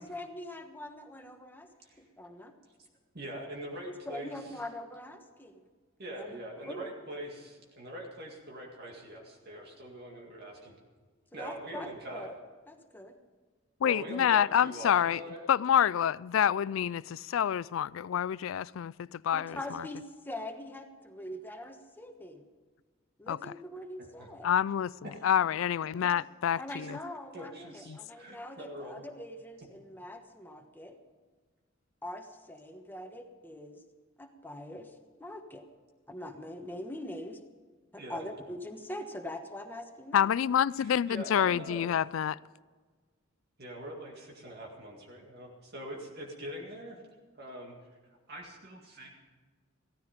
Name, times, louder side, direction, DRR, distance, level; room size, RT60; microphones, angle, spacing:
voice 1, 0.0-1.7 2.0-2.5 4.0-5.6 6.1-6.4 6.7-6.9 11.3-12.4 12.7-13.2 19.3-22.5 23.2-24.5 26.5-31.0 32.0-33.8 34.2-34.9 35.2-35.6 36.1-37.4 37.9-40.3, left 1 dB, 10° left, 1.2 m, -43 dB
voice 2, 3.1-4.6 6.0-10.7 11.3-12.3 13.8-15.5 24.0-24.3 25.0-25.2 26.8-26.9 27.3-29.0 38.0-38.2 40.8-41.9 43.6-47.0 47.3-47.7 48.3-49.1, right 1 dB, 50° right, 2.1 m, -43 dB
voice 3, 13.8-15.2 15.5-19.9 23.3-23.4 24.4-24.9 25.2-27.0 27.9-28.0 40.1-42.4, left 9 dB, 80° left, 0.3 m, -27 dB
16.0 x 14.0 x 5.2 m
head